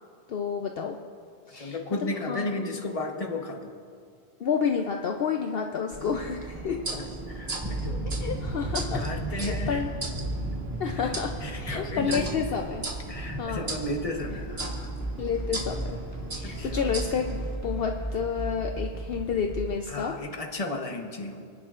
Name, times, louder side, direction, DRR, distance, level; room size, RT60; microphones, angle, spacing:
voice 1, 0.3-1.0 1.5-2.6 4.4-6.8 8.2-9.0 9.3-9.9 10.8-12.8 13.4-13.7 15.2-15.8 16.3-20.1, left 6 dB, 65° left, 3 dB, 0.8 m, -30 dB
voice 2, 1.6-3.7 6.6-8.2 8.9-9.9 11.0-11.1 11.4-12.5 13.1-14.9 16.4-16.9 19.9-21.5, left 2 dB, 35° left, 3 dB, 1.1 m, -34 dB
sound 1, 5.9-17.5, right 2 dB, 65° right, 1.7 m, -38 dB
sound 2, 7.6-19.1, right 1 dB, 20° right, 1.7 m, -36 dB
sound 3, 14.2-19.8, right 2 dB, 15° left, 1.7 m, -36 dB
29.5 x 10.0 x 2.5 m, 2.2 s
omnidirectional pair, 1.1 m